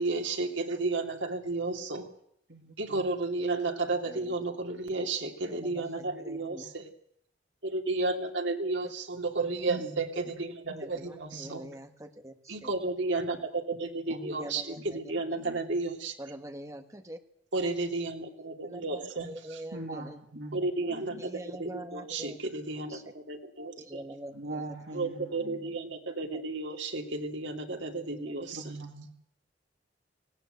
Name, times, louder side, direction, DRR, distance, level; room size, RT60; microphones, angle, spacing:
voice 1, 0.0-2.1 2.8-6.9 7.6-11.6 12.5-16.1 17.5-19.6 20.5-21.3 21.6-24.0 24.9-28.6, right 3 dB, 85° right, 3 dB, 3.0 m, -32 dB
voice 2, 2.5-3.0 5.5-6.5 9.7-10.3 10.7-11.7 14.1-14.4 14.8-15.8 19.7-21.3 24.3-25.8 28.5-29.2, right 2 dB, 70° right, 1 dB, 2.5 m, -43 dB
voice 3, 4.0-4.3 5.5-6.7 10.7-12.7 14.2-15.0 16.2-17.2 18.6-20.2 21.2-22.4 22.9-23.1 23.8-24.6 26.3-26.4, right 1 dB, 15° right, 6 dB, 1.6 m, -44 dB
18.5 x 17.5 x 8.1 m, 0.70 s
head